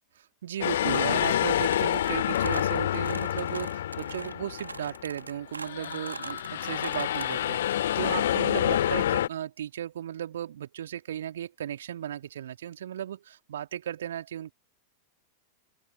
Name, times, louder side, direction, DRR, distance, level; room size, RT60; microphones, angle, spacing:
voice 1, 0.2-14.5, right 10 dB, 60° right, 3.1 m, -36 dB
sound 1, 0.6-5.2 5.6-9.3, left 11 dB, 60° left, 0.6 m, -28 dB
sound 2, 0.9-7.4, right 3 dB, 80° right, 1.6 m, -42 dB
open air
figure-of-eight pair, 90°, 0 cm